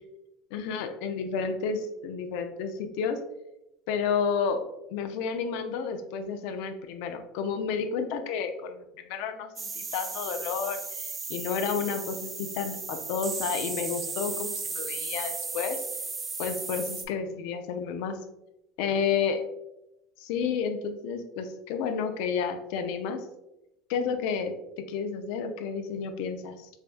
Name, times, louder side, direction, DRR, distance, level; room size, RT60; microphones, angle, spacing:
voice 1, 0.5-3.2 3.9-4.6 4.9-15.8 16.4-18.2 18.8-19.4 20.2-23.2 23.9-24.5 24.9-26.7, left 6 dB, 70° left, 7 dB, 0.4 m, -31 dB
sound 1, 9.6-17.1, right 4 dB, 20° right, 0.4 m, -35 dB
4.6 x 2.3 x 2.5 m, 0.89 s
supercardioid pair, 140°, 0 cm